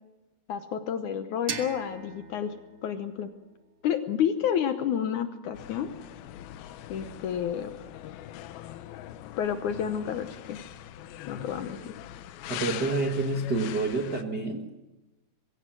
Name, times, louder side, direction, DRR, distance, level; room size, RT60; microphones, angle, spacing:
voice 1, 0.5-2.5 2.8-3.3 3.8-5.9 6.9-7.7 9.4-10.6 11.3-12.0, left 8 dB, 70° left, 8 dB, 2.1 m, -30 dB
sound 1, 1.5-4.3, right 5 dB, 85° right, 0.9 m, -41 dB
sound 2, 5.5-14.2, left 12 dB, 90° left, 2.7 m, -42 dB
voice 2, 12.5-14.6, right 3 dB, 45° right, 2 dB, 1.4 m, -28 dB
22.5 x 16.5 x 7.6 m, 1.0 s
omnidirectional pair, 4.2 m